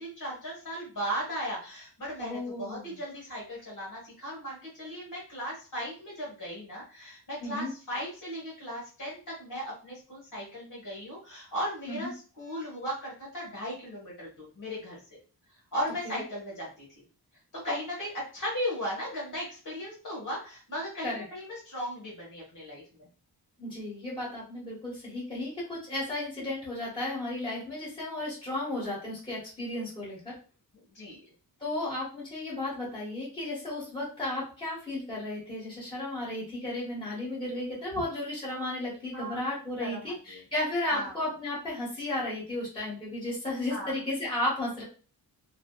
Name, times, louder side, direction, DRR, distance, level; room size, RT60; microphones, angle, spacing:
voice 1, 0.0-15.0 15.7-17.0 17.5-23.1 26.4-26.5 30.9-31.2 39.1-39.5 39.8-40.4 40.9-41.1 43.7-43.9, equal, 50° left, -5 dB, 1.2 m, -37 dB
voice 2, 2.2-3.0 7.4-7.7 11.9-12.1 16.0-16.2 21.0-21.2 23.6-30.3 31.6-44.8, left 1 dB, 10° left, -7 dB, 1.4 m, -34 dB
2.7 x 2.1 x 2.2 m, 0.37 s
wide cardioid pair, 155°, 40 cm